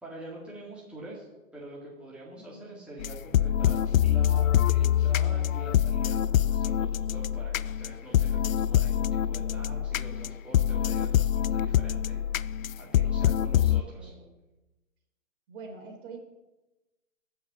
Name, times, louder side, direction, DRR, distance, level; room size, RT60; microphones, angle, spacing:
voice 1, 0.0-1.3 1.5-12.5 12.8-14.2, right 1 dB, 5° right, -6 dB, 2.1 m, -45 dB
voice 2, 2.4-3.2 13.5-14.4 15.5-16.2, right 4 dB, 40° right, 2 dB, 3.5 m, -47 dB
sound 1, 3.0-13.8, left 10 dB, 75° left, 0.5 m, -25 dB
14.0 x 5.7 x 7.0 m, 1.1 s
hypercardioid pair, 140°, 40 cm